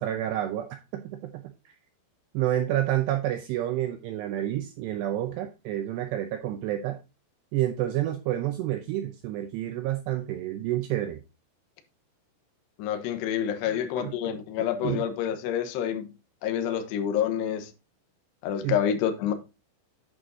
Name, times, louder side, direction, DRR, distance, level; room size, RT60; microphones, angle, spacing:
voice 1, 0.0-1.7 2.3-7.0 7.5-11.2 13.7-15.0 18.6-18.8, right 13 dB, 80° right, 2.5 m, -29 dB
voice 2, 12.8-16.1 16.4-17.7 18.4-19.3, left 9 dB, 70° left, 3.0 m, -28 dB
8.9 x 6.3 x 4.0 m
omnidirectional pair, 5.5 m